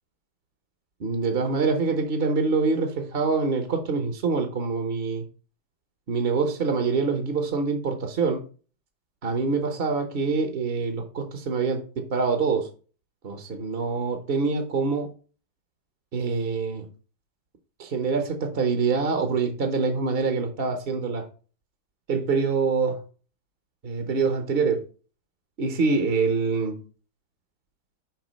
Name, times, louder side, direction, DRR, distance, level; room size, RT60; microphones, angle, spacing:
voice 1, 1.0-5.2 6.1-8.4 9.2-12.7 13.2-15.1 16.1-16.9 17.8-21.3 22.1-23.0 23.8-24.9 25.6-26.8, right 4 dB, 45° right, 0.8 m, -25 dB
6.0 x 4.7 x 6.1 m
omnidirectional pair, 2.0 m